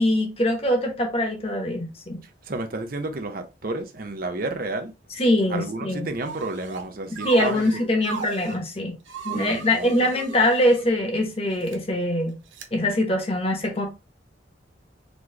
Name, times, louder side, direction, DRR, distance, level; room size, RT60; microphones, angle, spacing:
voice 1, 0.0-2.2 5.2-6.1 7.1-8.9 9.2-12.3 12.7-13.9, left 1 dB, 30° left, 1.2 m, -23 dB
voice 2, 2.5-4.9 5.5-7.8 9.3-10.1, right 2 dB, 50° right, 0.7 m, -31 dB
sound 1, 6.2-6.9 7.2-8.6 9.1-10.9 11.5-11.8 12.5-12.7, right 5 dB, 80° right, 0.8 m, -36 dB
4.2 x 3.0 x 3.3 m
head